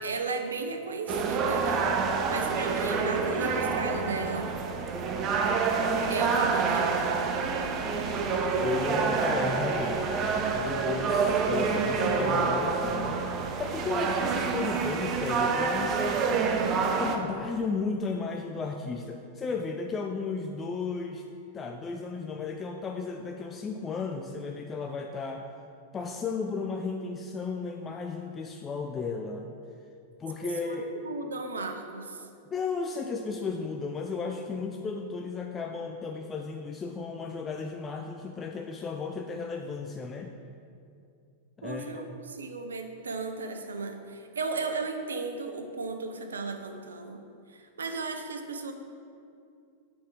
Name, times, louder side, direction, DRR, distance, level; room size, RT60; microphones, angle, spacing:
voice 1, 0.0-1.9 2.3-4.5 6.1-7.2 30.6-32.3 41.6-47.2 47.5-48.7, right 4 dB, 85° right, 6 dB, 0.6 m, -35 dB
sound 1, 1.1-17.2, right 5 dB, 40° right, 0.6 m, -27 dB
voice 2, 8.6-10.1 10.5-16.1 17.0-21.2 21.5-25.4 25.9-29.5 30.2-30.9 32.5-40.3 41.6-42.2, left 4 dB, 25° left, 3 dB, 0.4 m, -34 dB
7.1 x 4.4 x 4.8 m, 2.5 s
hypercardioid pair, 100°, 0 cm